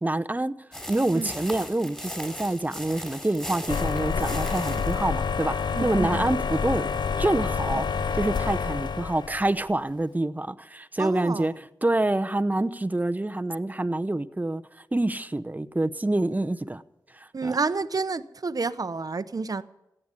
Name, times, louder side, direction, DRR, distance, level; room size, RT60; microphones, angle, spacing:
voice 1, 0.0-0.5 0.9-6.9 7.2-7.9 8.1-16.8 17.1-17.6, right 2 dB, 20° right, 0.8 m, -27 dB
sound 1, 0.7-5.1, equal, 10° left, 4.7 m, -38 dB
sound 2, 3.7-9.6, left 5 dB, 80° left, 0.6 m, -28 dB
voice 2, 5.7-6.3 11.0-11.5 17.3-19.6, right 4 dB, 55° right, 0.8 m, -29 dB
16.0 x 8.9 x 9.9 m
cardioid pair, 40°, 7 cm